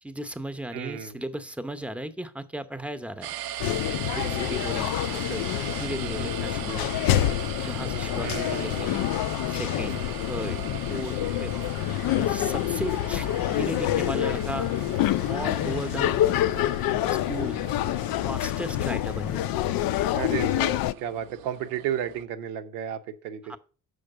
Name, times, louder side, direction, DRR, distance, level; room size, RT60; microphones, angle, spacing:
voice 1, 0.0-3.3 4.0-5.5 5.8-6.9 7.6-9.1 9.5-10.6 10.9-11.5 12.1-14.7 15.3-16.7 17.1-17.6 18.3-19.5 23.5-23.6, right 1 dB, 5° right, 0.8 m, -36 dB
voice 2, 0.7-1.2 4.2-4.5 8.2-9.1 20.1-23.6, right 9 dB, 80° right, 0.8 m, -33 dB
sound 1, 3.2-22.2, right 12 dB, 50° right, 0.6 m, -40 dB
sound 2, 3.6-20.9, left 13 dB, 50° left, 0.4 m, -27 dB
6.5 x 5.1 x 6.6 m
hypercardioid pair, 45°, 47 cm